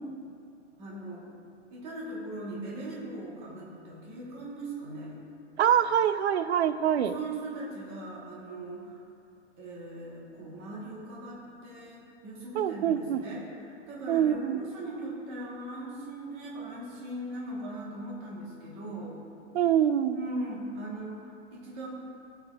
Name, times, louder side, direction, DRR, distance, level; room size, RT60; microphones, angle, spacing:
voice 1, 0.8-1.3 1.7-5.2 7.0-9.0 9.6-19.2 20.1-21.9, right 1 dB, 15° right, -5 dB, 1.1 m, -40 dB
voice 2, 5.6-7.2 12.5-13.2 14.1-14.6 19.5-20.2, right 9 dB, 65° right, 12 dB, 0.5 m, -25 dB
18.0 x 7.0 x 2.3 m, 2.5 s
hypercardioid pair, 170°, 36 cm